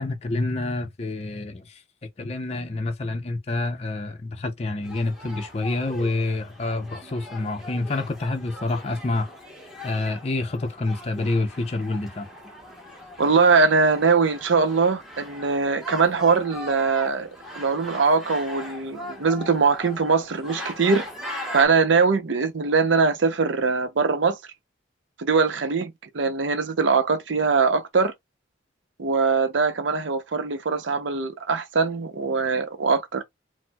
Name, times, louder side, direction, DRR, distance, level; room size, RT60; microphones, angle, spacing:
voice 1, 0.0-1.8 2.2-9.3 9.8-12.3, left 2 dB, 35° left, 0.5 m, -27 dB
sound 1, 4.8-21.7, left 1 dB, ahead, 0.9 m, -40 dB
voice 2, 13.2-21.0 21.5-24.4 25.2-28.1 29.0-33.2, right 4 dB, 80° right, 0.6 m, -22 dB
4.3 x 2.0 x 2.2 m
head